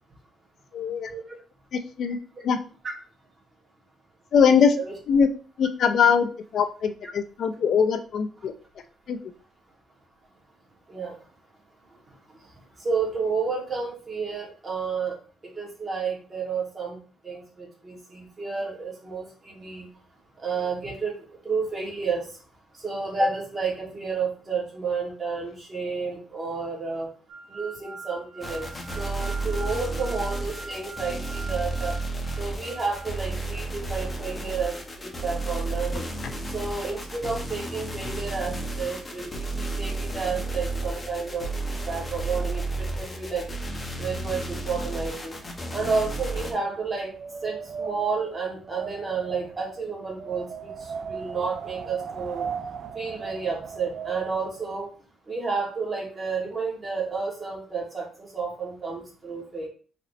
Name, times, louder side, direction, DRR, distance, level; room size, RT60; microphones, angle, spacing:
voice 1, 0.7-1.1 1.7-2.2 2.4-2.6 4.3-4.8 5.1-5.3 5.6-8.5 9.1-9.2, left 6 dB, 65° left, 8 dB, 0.5 m, -22 dB
voice 2, 4.4-4.9 10.9-11.2 12.8-15.2 15.6-17.0 17.2-19.9 20.4-22.2 22.8-27.1 27.5-28.7 29.0-31.9 32.4-36.0 36.5-43.4 44.0-45.3 45.7-47.1 47.4-50.7 51.1-52.5 52.9-54.9 55.3-59.7, right 4 dB, 30° right, -3 dB, 2.4 m, -31 dB
sound 1, 27.3-33.1, right 3 dB, 90° right, 1.4 m, -42 dB
sound 2, 28.4-46.5, right 2 dB, 25° left, 1.3 m, -32 dB
Wind, 45.6-54.9, right 6 dB, 55° right, 0.4 m, -38 dB
4.3 x 3.8 x 3.2 m, 0.38 s
cardioid pair, 90°, 0 cm